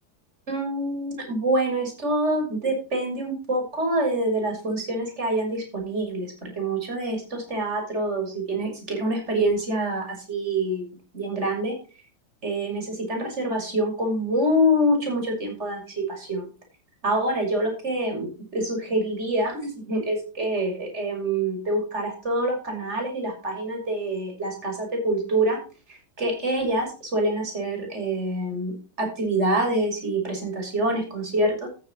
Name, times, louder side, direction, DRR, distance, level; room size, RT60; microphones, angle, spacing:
voice 1, 0.5-10.8 11.1-11.7 12.4-16.5 17.0-25.6 25.9-31.7, right 1 dB, 45° right, 3 dB, 6.4 m, -26 dB
14.5 x 7.2 x 4.5 m, 0.35 s
figure-of-eight pair, 90°, 0 cm